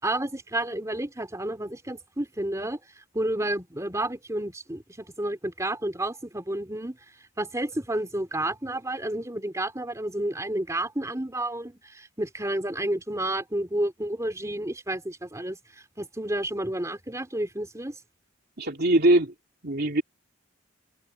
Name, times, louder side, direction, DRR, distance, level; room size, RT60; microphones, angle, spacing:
voice 1, 0.0-2.8 3.1-7.0 7.4-15.6 16.0-18.0, right 1 dB, 15° right, 3.5 m, -30 dB
voice 2, 18.6-19.3 19.6-20.0, right 1 dB, 50° right, 2.8 m, -21 dB
head